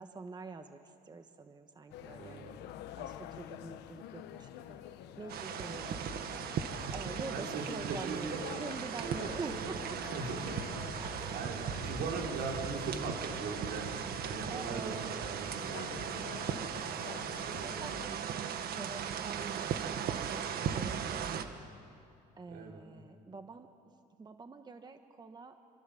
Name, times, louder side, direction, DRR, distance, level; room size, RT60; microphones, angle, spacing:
voice 1, 0.0-2.6 3.0-4.8 5.2-6.4 6.9-10.2 11.0-11.6 14.5-15.1 17.4-21.7 22.4-25.5, right 4 dB, 25° right, 7 dB, 1.3 m, -46 dB
sound 1, 1.9-18.1, left 11 dB, 85° left, 1.3 m, -48 dB
voice 2, 2.2-2.5 5.8-5.9 6.7-6.9 7.3-8.7 9.0-9.7 10.1-11.0 11.3-16.5 17.9-18.2 22.5-22.8, right 4 dB, 80° right, 0 dB, 5.4 m, -40 dB
sound 2, 5.3-21.5, right 8 dB, 65° right, 1.8 m, -38 dB
27.5 x 26.0 x 7.8 m, 2.5 s
cardioid pair, 110°, 17 cm